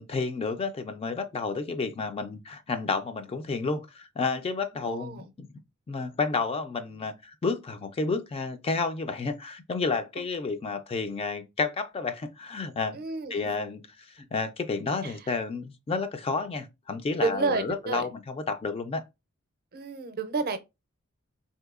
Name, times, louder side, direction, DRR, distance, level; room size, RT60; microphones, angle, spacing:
voice 1, 0.0-5.5 5.9-13.0 13.3-19.0, left 4 dB, 30° left, 0.3 m, -31 dB
voice 2, 4.7-5.3 12.9-13.6 15.0-15.1 17.2-18.1 19.7-20.6, right 3 dB, 45° right, 0.5 m, -30 dB
3.8 x 2.7 x 2.3 m
head